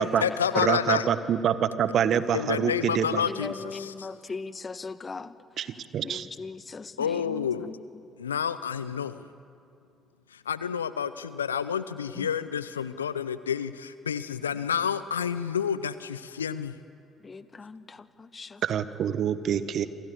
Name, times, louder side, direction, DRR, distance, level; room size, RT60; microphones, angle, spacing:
voice 1, 0.0-1.1 2.3-4.1 7.0-7.8 8.2-9.3 10.3-16.8, left 7 dB, 85° left, 15 dB, 0.5 m, -29 dB
voice 2, 0.6-3.2 5.6-6.3 18.6-19.9, right 8 dB, 55° right, 13 dB, 1.4 m, -26 dB
voice 3, 3.3-5.3 6.0-7.7 12.2-12.3 17.2-18.6, left 4 dB, 30° left, 14 dB, 1.2 m, -39 dB
28.0 x 26.0 x 7.1 m, 2.4 s
figure-of-eight pair, 45°, 0 cm